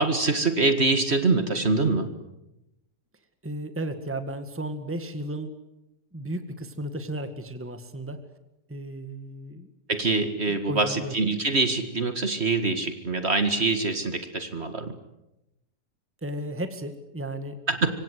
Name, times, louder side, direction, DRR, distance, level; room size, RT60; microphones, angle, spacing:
voice 1, 0.0-2.1 9.9-15.0 17.7-18.0, right 3 dB, 45° right, 8 dB, 2.1 m, -24 dB
voice 2, 3.4-5.5 6.1-8.2 8.7-9.7 10.5-11.1 16.2-17.6, right 1 dB, 10° right, 9 dB, 1.8 m, -34 dB
26.0 x 25.0 x 8.2 m, 0.89 s
omnidirectional pair, 1.7 m